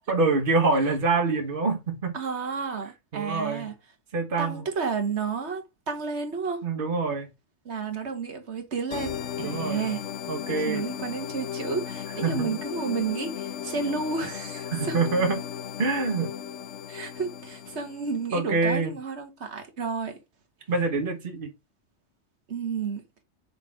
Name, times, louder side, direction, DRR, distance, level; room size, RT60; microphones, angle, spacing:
voice 1, 0.1-2.1 3.1-3.6 4.1-4.6 6.6-7.3 9.4-9.9 10.3-10.8 12.2-12.6 14.7-15.4 15.8-16.3 18.3-18.9 20.7-21.5, right 3 dB, 50° right, 1.6 m, -25 dB
voice 2, 2.1-3.7 4.4-6.6 7.7-10.0 10.7-15.0 16.9-20.1 22.5-23.0, right 5 dB, 70° right, 1.8 m, -31 dB
sound 1, 8.9-18.3, left 9 dB, 80° left, 1.0 m, -36 dB
7.0 x 4.4 x 4.8 m
omnidirectional pair, 1.2 m